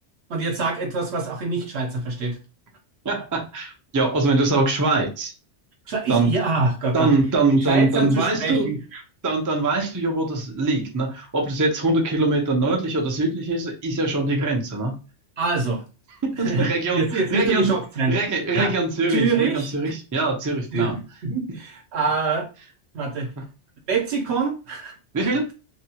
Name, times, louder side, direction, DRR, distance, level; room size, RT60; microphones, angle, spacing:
voice 1, 0.3-2.4 5.9-7.1 7.5-9.0 15.4-15.8 16.4-18.2 18.5-18.8 19.1-19.7 20.4-22.5 22.9-23.3 23.9-24.9 25.2-25.4, right 3 dB, 70° right, 2 dB, 1.0 m, -25 dB
voice 2, 3.0-5.3 6.1-6.3 6.9-8.7 9.2-15.0 16.4-17.7 18.1-20.9 25.1-25.5, right 2 dB, 25° right, 1 dB, 0.5 m, -22 dB
2.7 x 2.2 x 2.8 m, 0.32 s
omnidirectional pair, 1.2 m